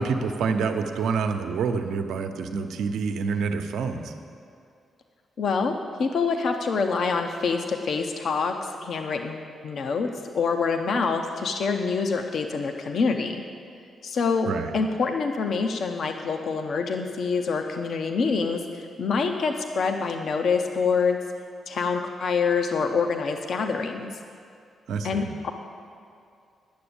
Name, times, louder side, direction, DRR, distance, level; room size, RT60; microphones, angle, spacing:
voice 1, 0.0-4.1 14.4-14.7 24.9-25.3, right 5 dB, 90° right, 6 dB, 0.8 m, -27 dB
voice 2, 5.4-10.1 10.3-13.4 14.0-14.5 14.7-21.2 21.7-24.1 25.0-25.5, left 5 dB, 65° left, 5 dB, 0.7 m, -26 dB
10.5 x 7.0 x 8.6 m, 2.4 s
cardioid pair, 90°, 0 cm